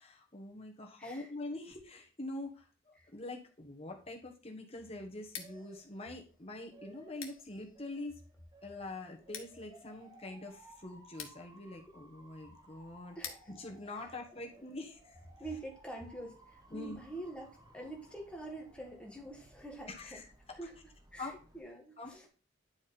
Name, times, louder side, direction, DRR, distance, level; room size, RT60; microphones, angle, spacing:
voice 1, 0.0-8.2 8.6-13.2 13.5-15.2 16.7-17.0 19.9-20.6 21.2-21.3 22.0-22.3, left 2 dB, 30° left, 2 dB, 1.4 m, -45 dB
voice 2, 1.0-1.3 3.0-3.1 13.1-13.4 14.0-14.1 15.4-20.2 20.5-20.7 21.1-22.3, right 2 dB, 5° left, 1 dB, 1.6 m, -46 dB
Motor vehicle (road) / Siren, 4.8-21.6, right 1 dB, 20° right, 1.2 m, -60 dB
Scissors, 5.2-15.0, left 8 dB, 85° left, 1.4 m, -53 dB
10.0 x 4.8 x 4.3 m, 0.38 s
head